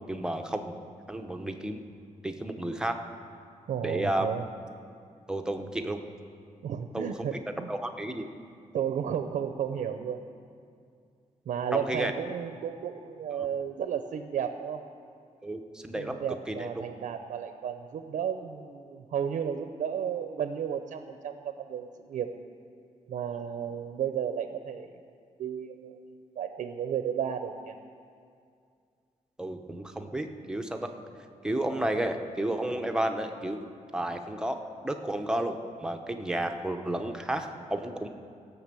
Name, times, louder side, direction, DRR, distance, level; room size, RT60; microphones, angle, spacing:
voice 1, 0.1-0.7 1.1-1.8 2.2-2.9 3.8-4.3 5.3-6.0 6.9-7.4 7.7-8.3 11.7-12.1 13.4-13.5 15.4-16.7 29.4-30.9 31.4-33.7 33.9-38.1, right 1 dB, 5° right, 5 dB, 0.7 m, -32 dB
voice 2, 3.7-4.4 6.6-7.7 8.7-10.2 11.5-14.8 15.9-22.3 23.1-24.9 25.4-26.0 26.4-27.8, right 8 dB, 80° right, 7 dB, 0.6 m, -33 dB
16.0 x 6.0 x 7.5 m, 2.3 s
wide cardioid pair, 150°, 13 cm